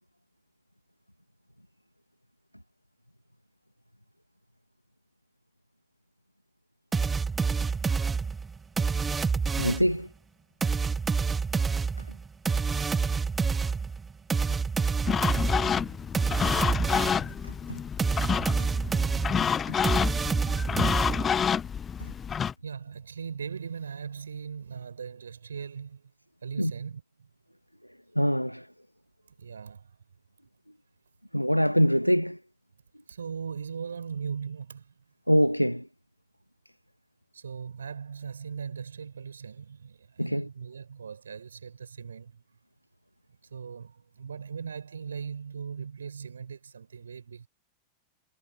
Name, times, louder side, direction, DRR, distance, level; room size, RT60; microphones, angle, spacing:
sound 1, 6.9-10.0 10.6-17.3 18.0-21.5, right 5 dB, 15° right, 2.6 m, -28 dB
voice 1, 9.6-10.1 17.4-17.8 19.7-19.8 26.6-26.7 28.1-28.7 31.3-32.4 35.3-35.9 40.2-40.5, equal, 90° left, 1.6 m, -24 dB
sound 2, 15.1-22.5, left 7 dB, 20° left, 0.7 m, -28 dB
voice 2, 22.6-26.1 26.4-27.3 29.4-30.0 33.1-34.9 37.3-42.4 43.5-47.5, right 6 dB, 70° right, 7.1 m, -39 dB
figure-of-eight pair, 90°, 0 cm